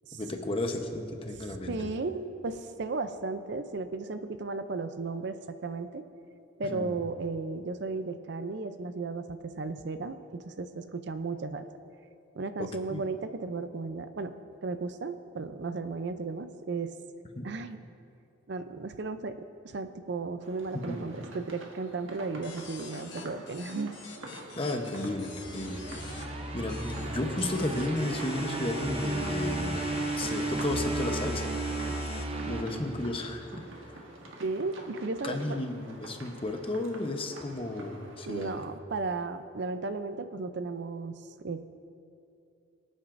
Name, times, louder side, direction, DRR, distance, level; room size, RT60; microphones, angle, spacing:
voice 1, 0.1-1.9 6.7-6.9 12.6-13.0 17.4-17.5 20.9-21.0 24.6-25.8 26.5-29.9 30.2-31.5 32.5-33.7 35.2-38.6, left 2 dB, 25° left, 4 dB, 0.9 m, -33 dB
voice 2, 1.4-6.0 6.6-11.7 12.3-14.3 14.6-16.9 17.4-17.9 18.5-23.9 34.4-35.6 38.2-41.6, right 3 dB, 60° right, 10 dB, 0.5 m, -35 dB
sound 1, 20.4-38.6, right 1 dB, 80° right, 1.4 m, -47 dB
sound 2, 22.4-26.2 26.7-27.0 27.4-32.2, left 6 dB, 60° left, 1.5 m, -46 dB
sound 3, 25.2-33.5, right 2 dB, 30° right, 0.7 m, -34 dB
24.0 x 8.8 x 2.6 m, 2.6 s
head